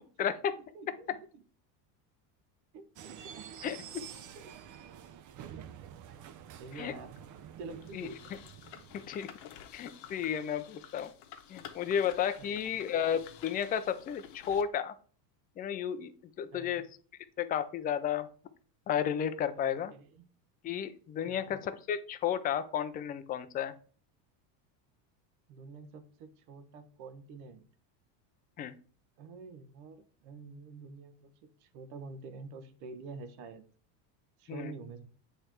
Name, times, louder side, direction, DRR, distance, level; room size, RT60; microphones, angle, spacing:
voice 1, 0.2-0.5 3.6-4.0 6.8-6.9 7.9-8.1 8.9-9.3 9.7-11.1 11.5-14.9 15.6-16.1 16.4-16.9 17.4-18.3 18.9-19.9 20.6-23.7 28.6-28.7 34.5-34.7, left 9 dB, 20° left, 10 dB, 0.3 m, -33 dB
voice 2, 0.7-1.4 2.7-3.7 4.3-4.6 5.5-5.7 6.6-7.2 7.6-8.3 12.4-12.8 16.5-16.9 19.6-20.2 21.2-21.7 25.5-27.6 29.2-33.6 34.4-35.1, right 4 dB, 75° right, 10 dB, 1.2 m, -48 dB
sound 1, 3.0-9.1, right 9 dB, 40° right, 0.7 m, -48 dB
sound 2, 7.8-14.6, left 9 dB, 60° left, 1.1 m, -51 dB
8.2 x 3.3 x 4.4 m, 0.42 s
supercardioid pair, 125°, 49 cm